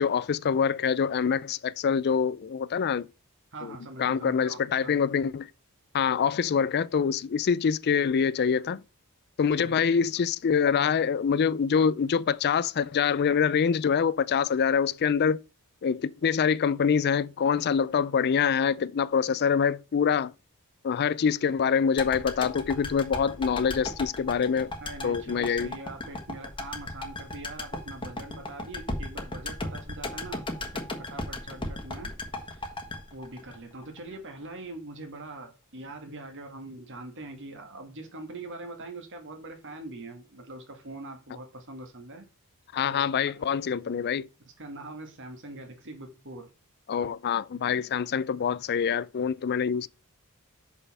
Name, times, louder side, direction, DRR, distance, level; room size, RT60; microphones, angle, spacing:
voice 1, 0.0-3.1 3.6-5.5 5.9-8.8 9.4-15.4 15.8-20.3 20.8-24.7 25.0-25.7 42.7-44.3 46.9-49.9, left 6 dB, 45° left, 0.4 m, -25 dB
voice 2, 3.5-4.9 9.5-10.0 24.8-32.1 32.5-32.7 33.1-42.3 42.9-43.5 44.6-46.5, right 2 dB, 55° right, 1.8 m, -43 dB
sound 1, 22.0-34.1 34.4-34.5, left 2 dB, 20° left, 1.5 m, -36 dB
6.3 x 5.6 x 5.4 m
head